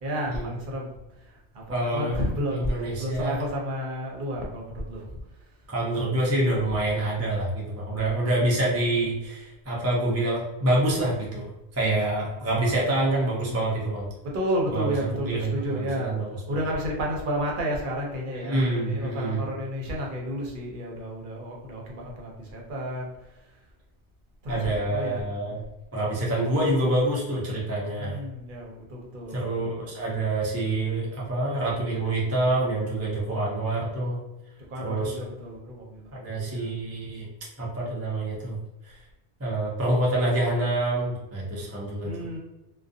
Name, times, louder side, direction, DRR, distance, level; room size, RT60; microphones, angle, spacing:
voice 1, 0.0-0.9 1.2-5.1 12.2-12.3 14.2-16.1 16.5-23.1 24.4-25.5 28.0-29.4 34.7-36.1 36.5-36.7 42.0-42.4, equal, 55° right, -1 dB, 0.8 m, -31 dB
voice 2, 1.7-2.2 2.5-3.4 5.7-14.1 14.7-16.6 18.3-19.4 24.5-25.6 25.9-28.2 29.3-34.2 34.8-35.2 36.1-37.3 37.6-38.6 38.9-39.0 39.4-42.1, right 1 dB, 25° right, -5 dB, 0.3 m, -26 dB
2.5 x 2.2 x 2.5 m, 0.99 s
omnidirectional pair, 1.1 m